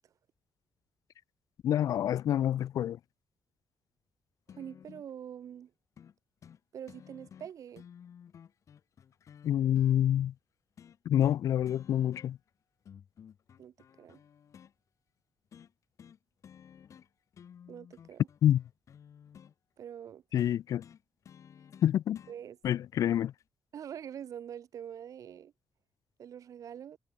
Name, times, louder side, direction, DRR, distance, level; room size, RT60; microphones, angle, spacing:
voice 1, 1.6-3.0 9.4-10.3 11.1-12.4 18.4-18.6 20.3-20.8 21.8-22.2 22.6-23.3, left 11 dB, 70° left, 0.5 m, -27 dB
sound 1, 4.5-5.1 6.0-6.1 6.4-6.6 6.9-10.0 10.8-11.4 11.7-12.5 12.9-14.7 15.5-15.7 16.0-16.2 16.4-17.1 17.3-19.5 20.4-22.4 23.4-23.5, left 8 dB, 55° left, 1.1 m, -54 dB
voice 2, 4.5-5.7 6.7-7.8 13.6-14.2 17.7-18.3 19.8-20.5 22.3-22.6 23.7-25.5 26.2-27.0, right 9 dB, 65° right, 1.4 m, -45 dB
cardioid pair, 115°, 6 cm